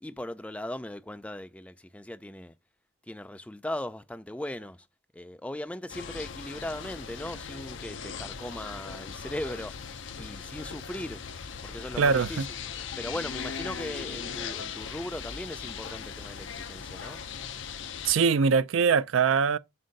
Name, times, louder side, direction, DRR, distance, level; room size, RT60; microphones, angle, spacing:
voice 1, 0.0-2.5 3.1-4.9 5.1-9.8 10.2-11.2 11.6-12.5 13.0-17.2, left 1 dB, 5° left, 0.3 m, -38 dB
sound 1, 5.9-18.2, left 6 dB, 65° left, 0.6 m, -39 dB
voice 2, 12.0-12.5 18.0-19.6, right 5 dB, 75° right, 0.4 m, -22 dB
7.5 x 2.6 x 5.2 m
head